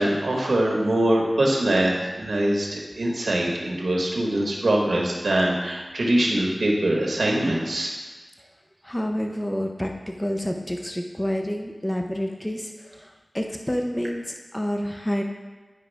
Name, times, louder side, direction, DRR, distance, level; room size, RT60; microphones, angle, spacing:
voice 1, 0.0-7.9, right 1 dB, 85° right, -2 dB, 1.5 m, -23 dB
voice 2, 8.8-9.9 10.2-15.2, equal, 20° left, 3 dB, 0.7 m, -28 dB
10.5 x 5.0 x 3.5 m, 1.3 s
wide cardioid pair, 40°, 0 cm